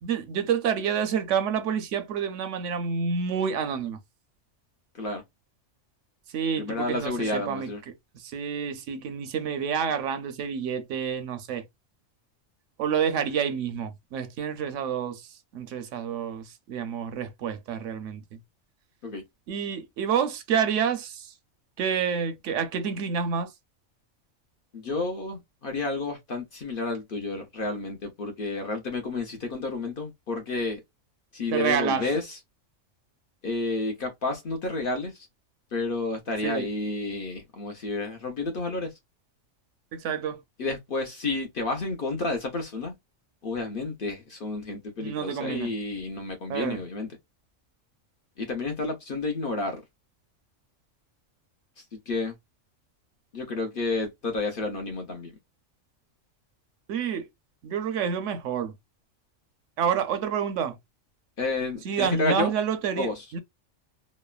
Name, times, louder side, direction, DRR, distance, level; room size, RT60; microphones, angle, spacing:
voice 1, 0.0-4.0 6.3-7.7 8.1-11.6 12.8-15.3 15.5-18.2 19.5-21.3 21.8-23.5 31.5-32.1 36.4-36.7 39.9-40.4 45.0-45.7 46.5-46.8 56.9-57.3 57.6-58.7 59.8-60.8 61.8-63.4, right 7 dB, 75° right, 0.9 m, -28 dB
voice 2, 6.6-7.8 19.0-19.2 24.7-30.8 31.3-32.4 33.4-35.3 35.7-38.9 40.6-42.9 43.4-47.1 48.4-49.8 51.8-52.3 53.3-55.3 61.4-62.5 63.0-63.2, left 3 dB, 55° left, 0.7 m, -30 dB
3.0 x 2.0 x 2.3 m
omnidirectional pair, 1.3 m